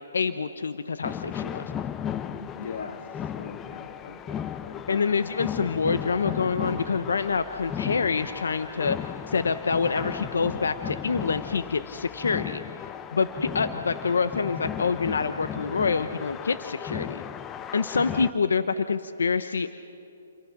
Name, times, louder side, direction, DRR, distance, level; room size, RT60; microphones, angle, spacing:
voice 1, 0.1-1.7 4.9-9.0 9.3-12.6 13.1-17.2 17.7-19.7, left 5 dB, 85° left, 10 dB, 0.9 m, -26 dB
sound 1, 1.0-18.3, left 9 dB, 15° left, 0.6 m, -35 dB
voice 2, 2.3-3.0 3.4-5.4, left 5 dB, 60° left, 6 dB, 2.1 m, -41 dB
29.5 x 23.0 x 6.0 m, 2.7 s
hypercardioid pair, 155°, 0 cm